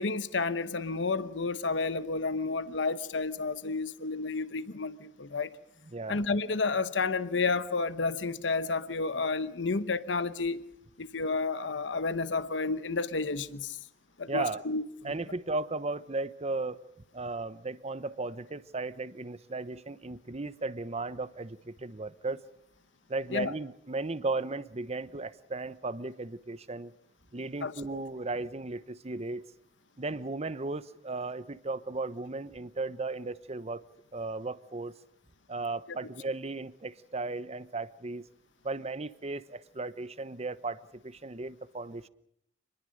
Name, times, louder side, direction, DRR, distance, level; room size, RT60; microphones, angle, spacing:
voice 1, 0.0-5.5 6.1-10.6 11.0-13.8 14.2-15.1 23.3-23.5 27.6-28.0, left 4 dB, 80° left, 1.0 m, -31 dB
voice 2, 5.9-6.2 14.3-14.6 15.0-16.8 17.1-22.4 23.1-26.9 27.3-29.4 30.0-33.8 34.1-34.9 35.5-38.3 38.6-42.1, right 3 dB, 35° right, 1.0 m, -36 dB
27.5 x 21.0 x 6.5 m
head